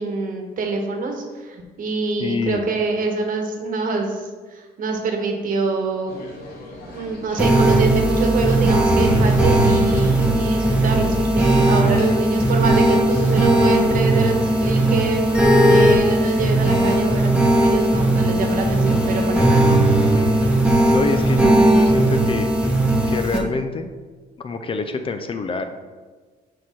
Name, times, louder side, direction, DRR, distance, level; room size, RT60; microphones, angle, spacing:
voice 1, 0.0-6.1 6.9-19.7, right 4 dB, 55° right, 3 dB, 1.2 m, -25 dB
voice 2, 2.2-2.7 12.1-12.2 20.1-22.5 23.1-23.9 24.4-25.6, left 3 dB, 30° left, 7 dB, 0.5 m, -26 dB
sound 1, 6.1-21.5, left 1 dB, 70° left, 1.6 m, -38 dB
sound 2, 7.4-23.4, right 1 dB, 5° right, 1.0 m, -17 dB
6.3 x 4.7 x 4.2 m, 1.4 s
cardioid pair, 110°, 17 cm